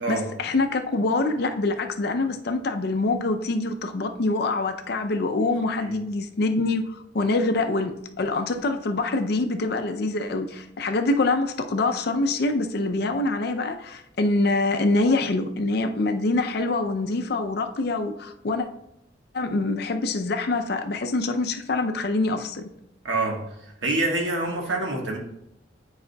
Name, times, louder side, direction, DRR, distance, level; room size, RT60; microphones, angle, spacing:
voice 1, 0.0-18.7 19.3-22.7, left 2 dB, 55° left, 7 dB, 0.5 m, -25 dB
voice 2, 23.0-23.4 23.8-25.2, right 2 dB, 80° right, 1 dB, 1.3 m, -26 dB
9.4 x 4.8 x 2.2 m, 0.80 s
head